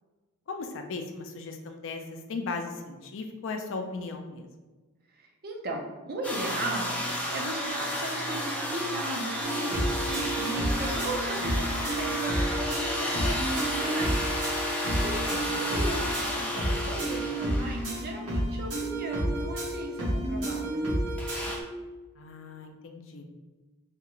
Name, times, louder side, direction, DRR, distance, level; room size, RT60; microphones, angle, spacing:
voice 1, 0.5-4.5 15.3-15.5 22.2-23.2, left 3 dB, 60° left, 4 dB, 0.4 m, -37 dB
voice 2, 5.1-14.3 14.6-20.9, right 2 dB, 45° right, 1 dB, 0.5 m, -37 dB
sound 1, 6.2-18.1 21.2-21.6, left 1 dB, 5° left, 0.5 m, -32 dB
sound 2, 9.4-21.6, right 1 dB, 75° right, 1.2 m, -31 dB
3.5 x 2.4 x 2.9 m, 1.2 s
head